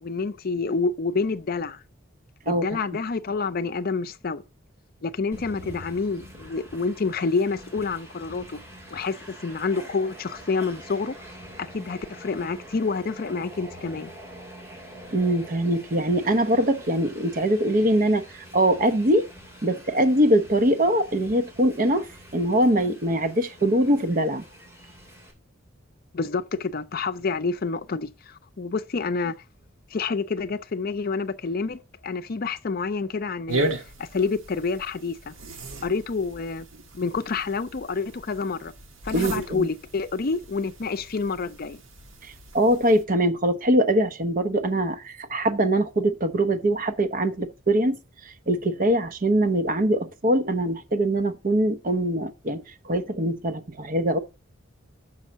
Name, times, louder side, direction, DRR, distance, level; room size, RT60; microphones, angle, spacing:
voice 1, 0.0-1.8 2.5-4.4 5.0-8.6 8.9-11.2 11.6-14.1 26.1-29.3 29.9-33.7 34.0-35.3 35.8-36.7 36.9-38.7 39.0-41.8, left 4 dB, 45° left, 0.5 m, -28 dB
Train, 5.3-25.3, equal, 15° right, 3.1 m, -45 dB
voice 2, 15.1-18.2 18.5-19.3 19.6-22.1 22.3-24.4 39.1-39.7 42.5-48.0 48.5-54.2, right 1 dB, 45° right, 0.8 m, -22 dB
sound 1, 33.5-43.0, right 2 dB, 75° right, 1.4 m, -36 dB
6.3 x 5.5 x 7.1 m
head